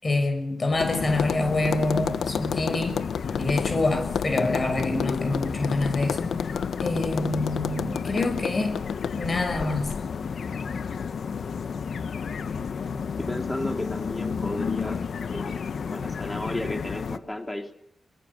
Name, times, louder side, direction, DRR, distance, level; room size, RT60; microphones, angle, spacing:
voice 1, 0.0-3.0 3.4-6.3 6.8-8.8 9.1-9.9, left 2 dB, 35° left, 6 dB, 6.8 m, -26 dB
Tap, 0.7-10.0, left 7 dB, 85° left, 1.2 m, -32 dB
sound 1, 0.8-17.2, left 6 dB, 65° left, 1.4 m, -32 dB
voice 2, 13.2-15.0 15.3-17.7, left 1 dB, 10° left, 4 dB, 3.5 m, -33 dB
23.0 x 22.5 x 8.8 m, 0.76 s
wide cardioid pair, 110°, 0 cm